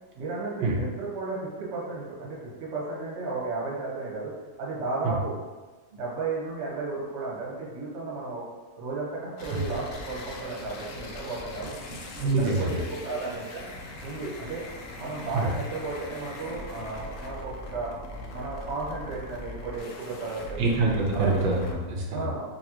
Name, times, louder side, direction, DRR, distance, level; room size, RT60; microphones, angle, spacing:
voice 1, 0.1-4.3 4.6-5.3 5.9-8.4 8.8-11.8 12.1-13.6 14.0-14.6 15.0-18.0 18.3-20.7 21.1-21.4 22.1-22.4, right 3 dB, 45° right, -5 dB, 1.1 m, -34 dB
sound 1, 9.4-21.8, left 2 dB, 75° left, 0.7 m, -41 dB
voice 2, 12.2-12.8 15.3-15.4 20.6-22.3, right 3 dB, 90° right, -2 dB, 1.4 m, -25 dB
4.1 x 2.8 x 2.9 m, 1.3 s
omnidirectional pair, 2.0 m